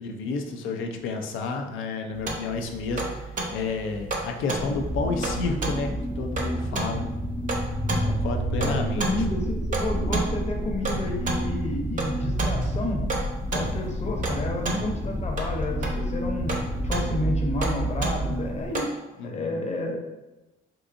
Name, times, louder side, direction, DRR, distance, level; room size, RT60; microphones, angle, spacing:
voice 1, 0.0-7.0 8.0-9.1 19.2-19.7, left 4 dB, 85° left, 4 dB, 0.5 m, -31 dB
sound 1, 2.1-18.9, right 2 dB, 40° right, 0.6 m, -32 dB
sound 2, 4.6-18.7, right 1 dB, 15° left, 0.4 m, -29 dB
voice 2, 8.6-13.0 13.5-16.5 16.8-18.9 19.2-20.0, left 1 dB, 35° left, 1 dB, 0.8 m, -30 dB
3.7 x 2.7 x 2.5 m, 1.0 s
cardioid pair, 90°, 20 cm